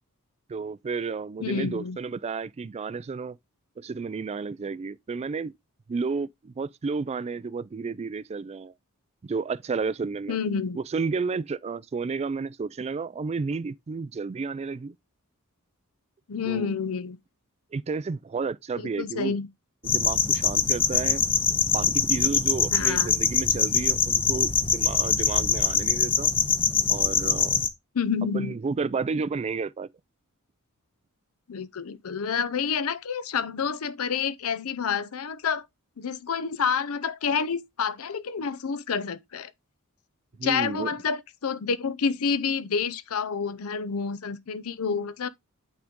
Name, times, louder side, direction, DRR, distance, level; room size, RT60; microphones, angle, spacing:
voice 1, 0.5-3.4 3.8-5.5 5.9-8.7 9.2-10.4 10.8-15.0 16.4-16.7 17.7-19.3 19.8-21.2 21.6-26.3 26.9-27.6 28.3-29.9 40.4-40.9, right 4 dB, 30° right, 0.3 m, -31 dB
voice 2, 1.4-2.0 10.3-10.8 16.3-17.2 19.0-19.5 22.7-23.1 27.9-28.5 31.5-35.7 36.0-39.5 40.4-45.3, left 6 dB, 70° left, 0.6 m, -28 dB
sound 1, 19.9-27.7, left 6 dB, 25° left, 0.7 m, -23 dB
8.5 x 3.9 x 3.6 m
head